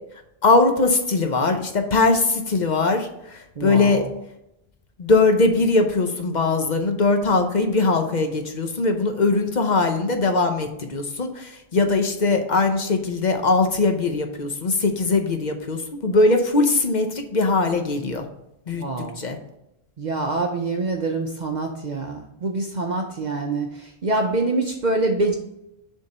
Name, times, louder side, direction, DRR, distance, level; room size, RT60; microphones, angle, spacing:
voice 1, 0.4-3.1 3.6-4.0 5.0-18.2 18.7-18.8 19.2-19.4, left 3 dB, 50° left, 5 dB, 0.8 m, -20 dB
voice 2, 3.6-4.1 18.7-19.2 20.0-25.4, right 2 dB, 50° right, 3 dB, 0.7 m, -25 dB
6.7 x 3.6 x 5.4 m, 0.85 s
omnidirectional pair, 1.0 m